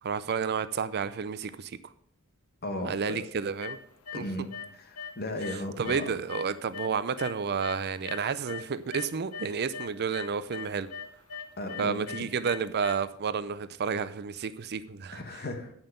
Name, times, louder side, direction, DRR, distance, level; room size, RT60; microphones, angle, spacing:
voice 1, 0.0-1.8 2.8-3.8 4.1-4.2 5.8-10.9 11.8-15.2, right 6 dB, 50° right, 14 dB, 0.5 m, -31 dB
voice 2, 2.6-3.2 4.1-6.1 11.6-12.3 15.1-15.7, left 1 dB, 45° left, 5 dB, 1.5 m, -36 dB
sound 1, 3.6-4.3 4.5-5.1 5.4-8.7 8.9-12.9, left 6 dB, 80° left, 1.0 m, -40 dB
9.0 x 5.6 x 6.6 m, 0.65 s
head